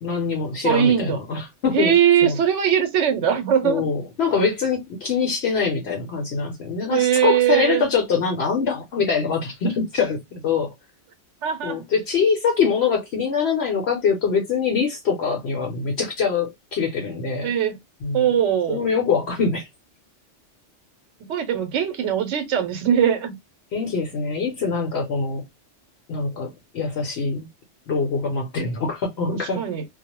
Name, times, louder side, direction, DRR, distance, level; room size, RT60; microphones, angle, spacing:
voice 1, 0.0-1.9 2.2-2.4 3.6-10.7 11.6-17.5 18.0-18.2 18.7-19.7 23.7-25.4 26.1-27.5 27.9-29.6, left 5 dB, 65° left, 0.9 m, -24 dB
voice 2, 0.6-1.2 1.7-3.8 6.9-7.8 11.4-11.8 17.4-17.8 18.1-18.9 21.3-23.3 29.3-29.9, right 9 dB, 80° right, 1.0 m, -20 dB
2.3 x 2.1 x 2.8 m
omnidirectional pair, 1.2 m